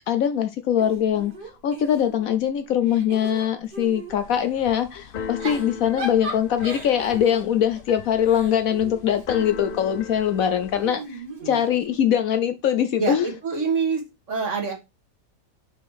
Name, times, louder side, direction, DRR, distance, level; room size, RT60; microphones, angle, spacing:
voice 1, 0.1-1.3 1.6-13.3, left 9 dB, 65° left, 1.0 m, -22 dB
Giggle / Chuckle chortle, 0.8-2.4 2.8-4.2 5.2-9.7 10.7-12.1, right 2 dB, 90° right, 2.3 m, -37 dB
Keyboard (musical), 4.2-10.9, left 6 dB, 85° left, 0.4 m, -38 dB
voice 2, 13.0-14.0 14.3-14.7, right 5 dB, 50° right, 1.9 m, -26 dB
6.2 x 5.0 x 4.7 m
omnidirectional pair, 1.7 m